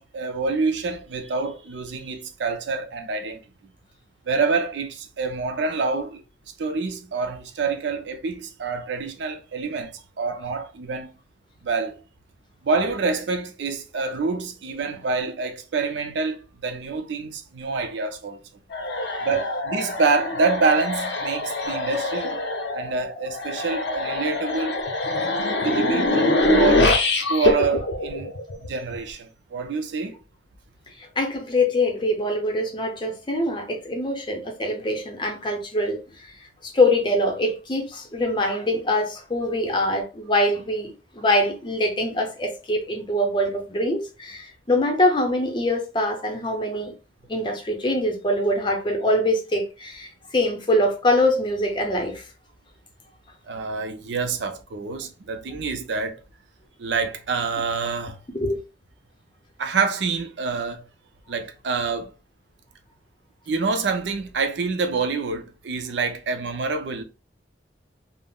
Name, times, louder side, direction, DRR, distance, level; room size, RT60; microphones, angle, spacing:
voice 1, 0.0-3.7 4.3-6.2 6.6-11.1 11.6-12.0 12.6-18.4 19.2-22.4 22.7-24.8 25.6-27.0 27.3-28.3 28.6-30.2 53.5-56.2 56.8-58.2 59.6-60.8 61.3-62.1 63.5-67.0, right 4 dB, 75° right, 0.5 m, -26 dB
sound 1, 18.7-28.9, left 2 dB, 75° left, 0.5 m, -24 dB
voice 2, 18.9-19.3 31.0-36.3 36.6-46.9 47.3-52.2 58.3-58.6, left 1 dB, 25° left, 0.6 m, -24 dB
3.5 x 2.0 x 2.3 m
head